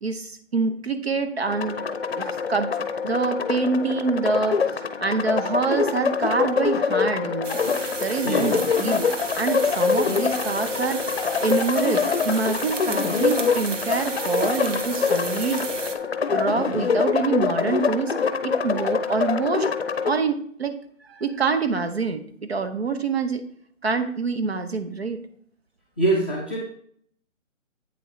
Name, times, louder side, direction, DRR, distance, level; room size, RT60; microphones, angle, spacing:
voice 1, 0.0-2.8 3.0-4.6 5.0-7.6 8.0-9.1 9.4-11.1 11.4-15.7 16.3-18.1 18.4-19.7 20.1-20.7 21.0-23.4 23.8-25.2, right 4 dB, 50° right, 9 dB, 0.8 m, -26 dB
sound 1, 1.5-20.1, left 5 dB, 50° left, 0.7 m, -25 dB
sound 2, 7.4-15.9, right 4 dB, 65° right, 1.2 m, -34 dB
voice 2, 26.0-26.6, right 1 dB, 10° right, -7 dB, 0.7 m, -23 dB
8.4 x 7.2 x 3.1 m, 0.62 s
hypercardioid pair, 165°, 39 cm